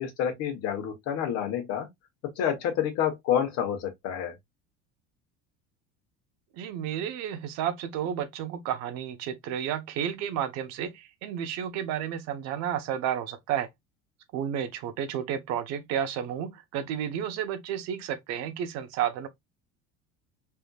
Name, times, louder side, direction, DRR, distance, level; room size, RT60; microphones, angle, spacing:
voice 1, 0.0-1.9 2.4-4.3, left 9 dB, 55° left, 1.1 m, -28 dB
voice 2, 6.5-13.7 14.3-19.3, right 9 dB, 60° right, 0.8 m, -31 dB
3.4 x 2.7 x 2.3 m
cardioid pair, 145°, 30 cm